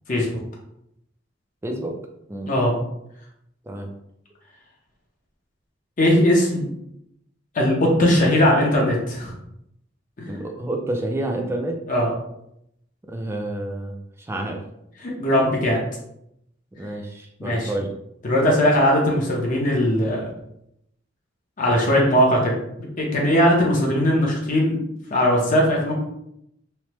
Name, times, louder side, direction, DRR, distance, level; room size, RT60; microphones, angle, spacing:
voice 1, 1.6-2.0 2.3-2.5 3.6-3.9 10.3-11.8 13.1-14.6 16.8-17.9, right 1 dB, 15° right, 2 dB, 0.3 m, -29 dB
voice 2, 2.5-2.8 6.0-6.7 7.5-9.3 10.2-10.3 11.9-12.1 15.0-15.8 17.4-17.7 18.2-20.2 21.6-22.5 23.0-24.8 25.1-25.9, equal, 45° left, -2 dB, 0.7 m, -19 dB
3.2 x 2.1 x 2.9 m, 0.78 s
head